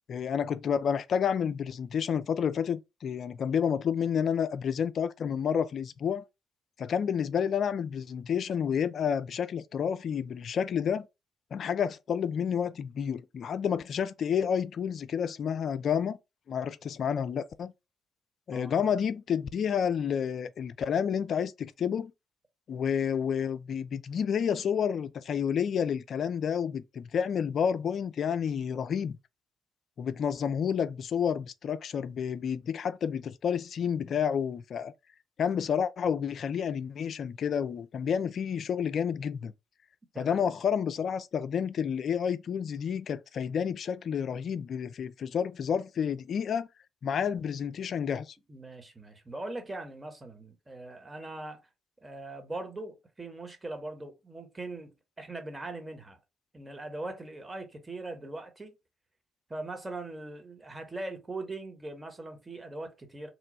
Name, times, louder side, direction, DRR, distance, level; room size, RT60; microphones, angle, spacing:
voice 1, 0.1-6.2 6.8-11.1 11.5-16.2 16.5-17.7 18.5-22.1 22.7-29.2 30.0-34.9 35.4-39.5 40.2-46.7 47.0-48.3, left 7 dB, 55° left, 0.3 m, -30 dB
voice 2, 40.1-40.5 48.5-51.6 52.0-56.2 56.5-58.7 59.5-63.3, right 2 dB, 25° right, 1.1 m, -41 dB
3.0 x 2.2 x 4.0 m
hypercardioid pair, 40°, 0 cm